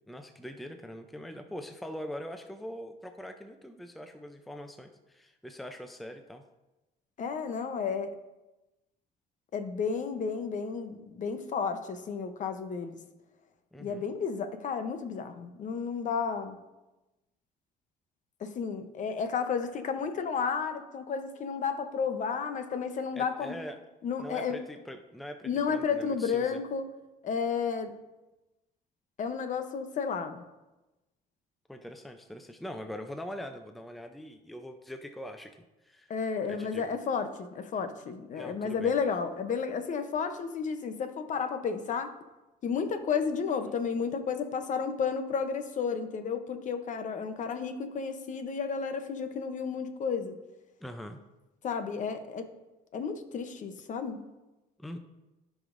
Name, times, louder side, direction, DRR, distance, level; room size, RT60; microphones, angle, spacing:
voice 1, 0.1-6.4 13.7-14.1 23.1-23.8 24.2-26.6 31.7-35.6 35.8-36.1 36.5-36.9 38.3-38.9 50.8-51.2 54.8-55.0, equal, ahead, 6 dB, 0.5 m, -42 dB
voice 2, 7.2-8.1 9.5-13.0 13.8-16.6 18.4-23.6 24.0-24.6 25.4-26.9 27.2-27.9 29.2-30.4 36.1-42.1 42.6-50.4 51.6-52.5 52.9-54.2, left 6 dB, 50° left, 9 dB, 0.8 m, -32 dB
14.5 x 5.1 x 2.6 m, 1.0 s
cardioid pair, 110°, 17 cm